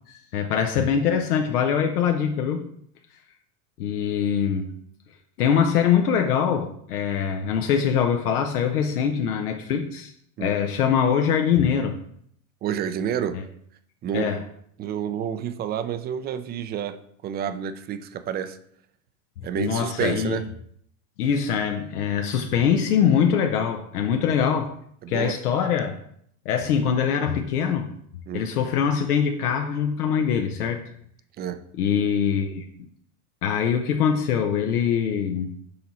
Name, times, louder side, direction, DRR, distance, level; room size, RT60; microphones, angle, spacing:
voice 1, 0.1-2.7 3.8-4.7 5.4-10.1 10.4-12.0 13.3-13.4 14.1-14.4 19.6-20.4 21.2-24.7 25.1-26.0 26.5-27.9 28.3-30.8 31.8-32.6 33.4-35.6, left 7 dB, 85° left, 4 dB, 0.8 m, -23 dB
voice 2, 12.6-13.4 14.0-14.5 14.8-18.6 19.4-20.4 25.0-25.4 28.3-28.5 31.4-31.6, right 9 dB, 25° right, 11 dB, 0.4 m, -29 dB
6.8 x 4.0 x 4.2 m, 0.68 s
hypercardioid pair, 105°, 44 cm